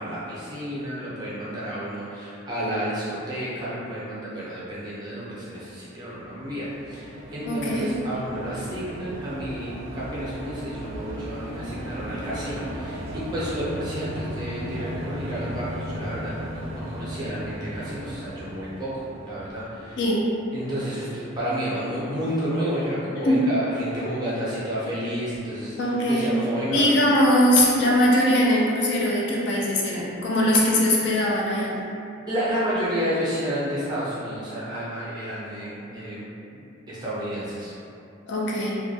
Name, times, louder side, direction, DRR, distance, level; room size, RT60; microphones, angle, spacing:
voice 1, 0.0-20.0 20.5-26.9 32.3-36.2 36.5-36.6 36.9-37.7, equal, 20° right, -9 dB, 0.5 m, -31 dB
sound 1, 6.0-20.5, equal, 80° right, 0.3 m, -36 dB
voice 2, 7.5-7.9 20.0-20.3 23.2-23.4 25.8-26.4 26.7-31.7 38.3-38.8, left 1 dB, 55° left, -4 dB, 0.4 m, -21 dB
2.2 x 2.1 x 2.6 m, 2.6 s
head